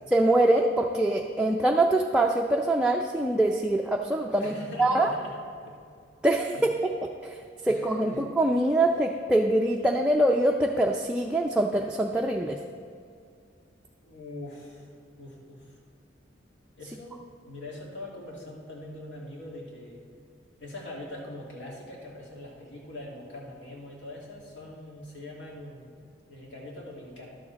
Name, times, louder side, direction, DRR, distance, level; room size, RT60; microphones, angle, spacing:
voice 1, 0.1-5.1 6.2-6.6 7.2-7.4 7.6-12.6, right 1 dB, 5° right, 0 dB, 0.4 m, -24 dB
voice 2, 4.4-5.8 6.5-6.7 7.6-8.2 14.0-14.9 15.2-15.8 16.8-17.2 17.5-20.0 20.6-25.9 26.3-27.3, left 1 dB, 75° left, -3 dB, 2.2 m, -42 dB
11.5 x 7.2 x 4.0 m, 2.3 s
head